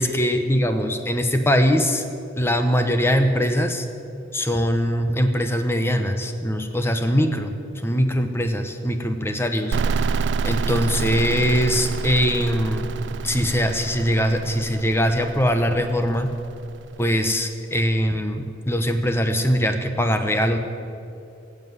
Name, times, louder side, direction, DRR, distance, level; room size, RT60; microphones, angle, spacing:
voice 1, 0.0-2.0 2.4-3.8 4.3-7.5 7.8-9.8 10.4-12.9 13.2-16.3 17.0-20.6, equal, 10° left, 6 dB, 0.8 m, -22 dB
sound 1, 9.7-17.3, right 5 dB, 65° right, 0.3 m, -28 dB
17.5 x 7.7 x 7.8 m, 2.6 s
head